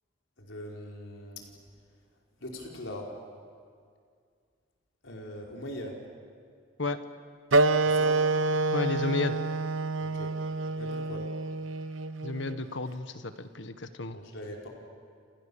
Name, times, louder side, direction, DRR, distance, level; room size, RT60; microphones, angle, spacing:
voice 1, 0.4-1.5 2.4-3.1 5.0-6.0 7.8-8.2 10.0-10.3 10.8-11.3 14.1-14.7, left 1 dB, 90° left, -1 dB, 4.6 m, -41 dB
Wind instrument woodwind instrument, 7.5-12.6, right 3 dB, 85° right, 0.9 m, -27 dB
voice 2, 8.7-9.4 12.2-14.2, left 3 dB, 65° left, 10 dB, 1.5 m, -32 dB
30.0 x 28.0 x 7.1 m, 2.2 s
head